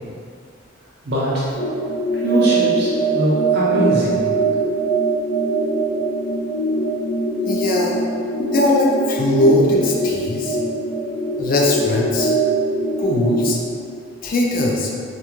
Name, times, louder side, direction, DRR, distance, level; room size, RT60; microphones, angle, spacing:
voice 1, 1.0-1.5 2.1-4.2, right 1 dB, 60° right, -8 dB, 0.5 m, -21 dB
sound 1, 1.5-13.4, right 2 dB, 30° left, 1.4 m, -22 dB
voice 2, 7.5-8.0 8.4-10.6 11.4-12.3 13.0-13.6 14.2-14.9, left 1 dB, 50° left, -2 dB, 0.4 m, -19 dB
2.4 x 2.2 x 2.9 m, 2.3 s
head